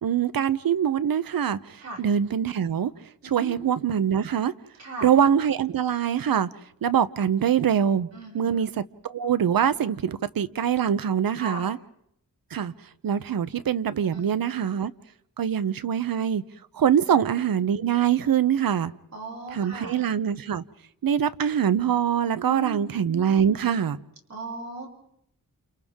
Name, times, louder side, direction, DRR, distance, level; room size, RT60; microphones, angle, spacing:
voice 1, 0.0-2.9 3.2-4.5 5.0-6.5 6.8-8.1 8.3-8.7 9.0-11.8 12.5-12.7 13.0-14.9 15.4-16.4 16.7-18.9 19.5-20.6 21.0-24.0, right 8 dB, 80° right, 0.8 m, -24 dB
voice 2, 4.8-5.1 8.1-8.6 11.4-11.7 14.1-14.3 14.5-14.7 19.1-20.0 22.4-22.9 24.3-24.9, right 3 dB, 50° right, 6.8 m, -37 dB
29.5 x 29.5 x 3.7 m
wide cardioid pair, 130°, 34 cm